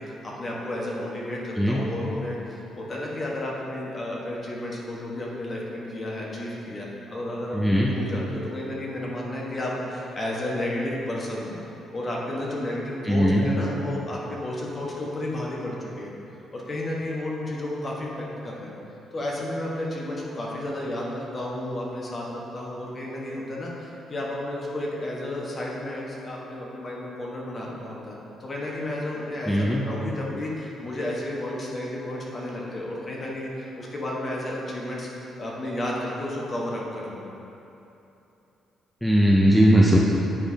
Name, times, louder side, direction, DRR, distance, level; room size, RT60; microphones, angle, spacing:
voice 1, 0.0-11.6 11.9-16.1 16.5-18.7 19.1-37.2, left 1 dB, 35° left, -4 dB, 1.3 m, -32 dB
voice 2, 7.5-7.9 13.1-13.5 29.5-29.9 39.0-40.0, equal, ahead, -3 dB, 0.5 m, -19 dB
8.8 x 4.8 x 2.8 m, 2.9 s
cardioid pair, 90°, 0 cm